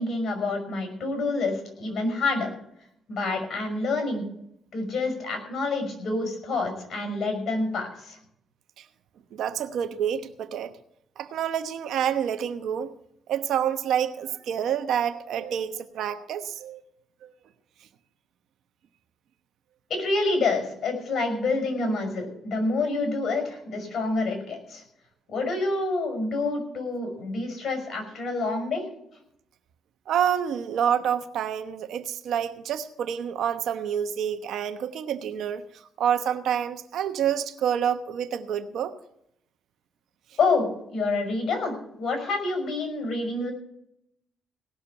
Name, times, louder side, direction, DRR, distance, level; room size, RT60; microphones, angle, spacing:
voice 1, 0.0-2.5 3.1-4.2 4.7-8.2 19.9-24.8 25.3-28.8 40.4-43.5, left 3 dB, 55° left, 5 dB, 5.6 m, -27 dB
voice 2, 9.3-10.7 11.2-12.9 13.3-16.8 17.2-17.3 30.1-35.6 36.0-38.9, right 9 dB, 75° right, 9 dB, 1.0 m, -28 dB
18.0 x 6.6 x 7.2 m, 0.75 s
cardioid pair, 90°, 0 cm